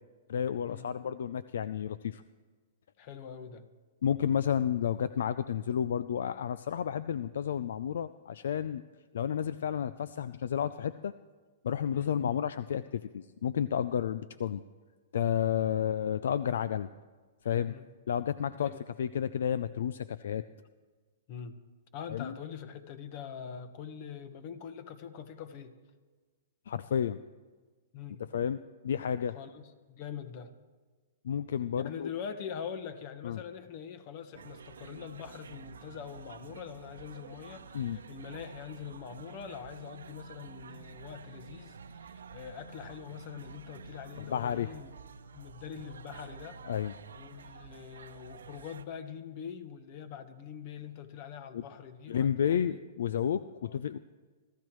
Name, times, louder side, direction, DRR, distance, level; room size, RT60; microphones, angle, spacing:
voice 1, 0.3-2.2 4.0-8.8 9.1-11.1 11.6-14.6 15.1-16.9 17.4-17.7 18.1-18.7 19.0-20.4 22.1-22.4 26.7-27.2 28.2-28.6 28.8-29.4 31.2-32.1 33.2-33.4 37.7-38.0 44.2-44.7 46.7-46.9 51.5-51.6 52.1-54.0, left 8 dB, 75° left, 14 dB, 0.4 m, -31 dB
voice 2, 3.0-3.6 11.9-12.1 17.7-17.9 18.6-18.8 21.3-21.5 21.9-25.7 27.9-28.2 29.3-30.5 31.8-44.9 45.3-46.6 47.1-52.8 53.6-53.7, left 7 dB, 45° left, 10 dB, 1.4 m, -43 dB
sound 1, 34.3-48.8, right 6 dB, 85° right, 0.9 m, -49 dB
25.0 x 14.0 x 3.2 m, 1.4 s
hypercardioid pair, 125°, 0 cm